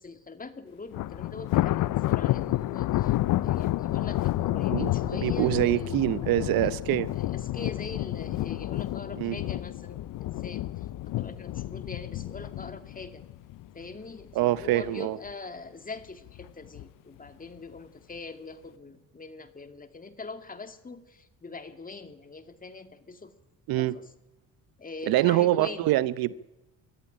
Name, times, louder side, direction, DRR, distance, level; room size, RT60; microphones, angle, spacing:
voice 1, 0.0-3.2 3.4-6.1 6.6-6.9 7.1-10.9 11.2-13.2 13.7-23.3 23.8-24.1 24.8-26.0, left 3 dB, 25° left, 2.3 m, -43 dB
Thunder, 0.9-14.2 14.6-14.9 15.3-15.4 16.3-16.8, left 15 dB, 60° left, 0.7 m, -30 dB
voice 2, 5.2-7.1 9.2-9.4 14.3-15.2 23.7-24.0 25.1-26.4, right 15 dB, 75° right, 0.9 m, -25 dB
22.0 x 13.5 x 10.0 m
cardioid pair, 90°, 36 cm